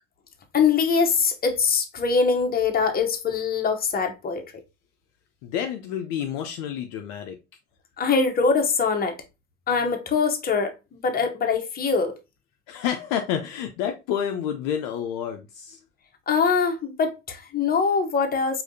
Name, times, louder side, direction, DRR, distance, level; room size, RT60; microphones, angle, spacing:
voice 1, 0.5-4.4 8.0-9.2 9.7-12.2 16.3-18.6, left 5 dB, 25° left, 0.9 m, -23 dB
voice 2, 5.4-7.4 12.7-15.8, left 9 dB, 50° left, 0.6 m, -29 dB
4.8 x 2.8 x 2.6 m
figure-of-eight pair, 65°, 39 cm